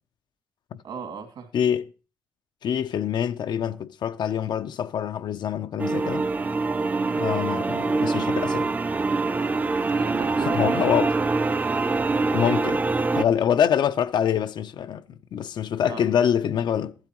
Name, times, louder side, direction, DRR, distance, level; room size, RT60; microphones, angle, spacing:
voice 1, 0.8-1.5 7.0-7.2 9.9-10.8 15.8-16.1, right 6 dB, 80° right, 2.6 m, -37 dB
voice 2, 1.5-1.9 2.6-6.2 7.1-8.7 10.5-11.1 12.3-12.8 13.1-16.9, left 9 dB, 70° left, 0.6 m, -25 dB
sound 1, 5.8-13.2, right 3 dB, 20° right, 0.5 m, -24 dB
15.0 x 12.0 x 3.0 m
cardioid pair, 115°, 8 cm